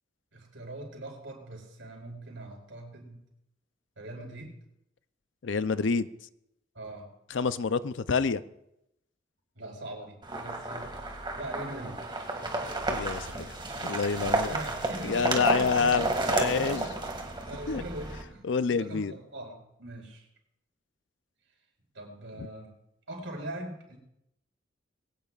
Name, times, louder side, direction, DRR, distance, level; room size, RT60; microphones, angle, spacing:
voice 1, 0.3-3.2 4.0-4.6 6.7-7.1 9.5-10.9 11.3-12.0 12.4-12.7 14.4-16.2 16.5-17.2 17.4-20.3 21.9-22.7 23.1-24.0, right 1 dB, 85° right, 1 dB, 4.9 m, -42 dB
voice 2, 5.4-6.1 7.3-8.4 12.9-13.6 13.8-14.6 15.0-16.9 17.7-17.8 18.4-19.1 22.4-22.5, left 5 dB, 70° left, 14 dB, 0.5 m, -28 dB
sound 1, 10.2-18.2, right 2 dB, 25° right, 2.1 m, -32 dB
22.0 x 17.5 x 2.4 m, 0.83 s
head